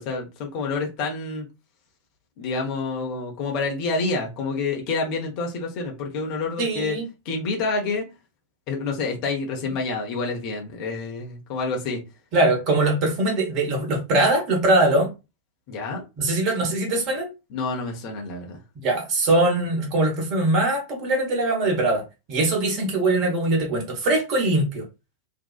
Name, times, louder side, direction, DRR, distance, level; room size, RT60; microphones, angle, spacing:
voice 1, 0.0-1.4 2.4-7.0 7.2-8.1 8.7-12.0 15.7-16.0 17.5-18.6, left 3 dB, 45° left, 0.8 m, -28 dB
voice 2, 6.6-7.0 12.3-15.1 16.2-17.3 18.8-24.8, right 2 dB, 40° right, 1.1 m, -22 dB
2.7 x 2.3 x 2.3 m
figure-of-eight pair, 90°, 0 cm